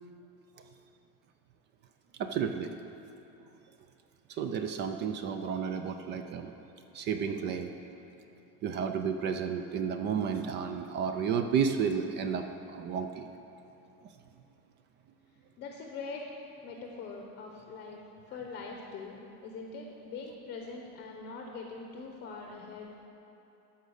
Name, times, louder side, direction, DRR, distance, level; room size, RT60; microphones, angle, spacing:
voice 1, 2.2-2.7 4.3-6.5 6.9-7.7 8.6-13.3, right 6 dB, 35° right, 7 dB, 0.4 m, -32 dB
voice 2, 15.6-16.3 16.6-18.0 18.3-23.1, left 4 dB, 30° left, 1 dB, 0.8 m, -43 dB
13.0 x 5.2 x 6.4 m, 2.9 s
cardioid pair, 170°, 34 cm